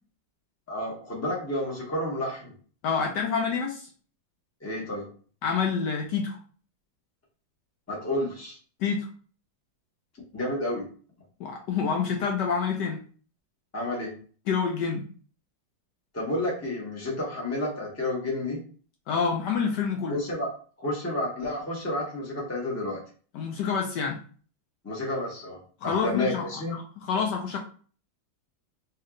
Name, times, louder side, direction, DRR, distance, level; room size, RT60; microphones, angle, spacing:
voice 1, 0.7-2.5 4.6-5.1 7.9-8.6 10.3-10.9 13.7-14.1 16.1-18.6 20.1-20.5 20.8-23.0 24.8-25.6 25.8-26.8, left 1 dB, 10° left, -3 dB, 0.8 m, -30 dB
voice 2, 2.8-3.9 5.4-6.4 8.8-9.1 11.4-13.0 14.5-15.1 19.1-20.2 23.3-24.2 25.8-26.5 27.0-27.6, left 6 dB, 75° left, 1 dB, 1.1 m, -27 dB
3.2 x 2.8 x 3.6 m, 0.42 s
omnidirectional pair, 2.1 m